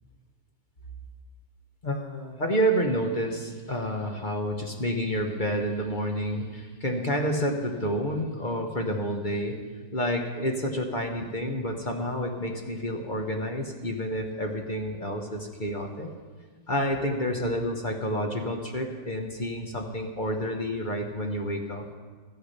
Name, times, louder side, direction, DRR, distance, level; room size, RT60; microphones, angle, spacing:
voice 1, 1.8-9.6 9.9-16.1 16.7-21.9, equal, 35° left, 2 dB, 0.8 m, -29 dB
14.0 x 9.4 x 6.6 m, 1.5 s
omnidirectional pair, 2.2 m